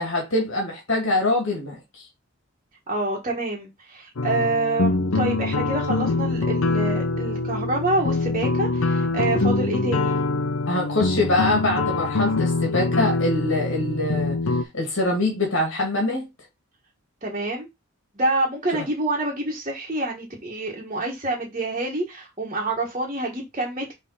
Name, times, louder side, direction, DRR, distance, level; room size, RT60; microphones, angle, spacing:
voice 1, 0.0-2.1 10.7-16.3, left 2 dB, 60° left, 2.1 m, -24 dB
voice 2, 2.9-10.2 17.2-17.7 18.1-23.9, right 2 dB, 30° right, 1.6 m, -27 dB
sound 1, 4.2-14.6, left 3 dB, 75° left, 0.7 m, -24 dB
6.5 x 3.4 x 5.6 m
head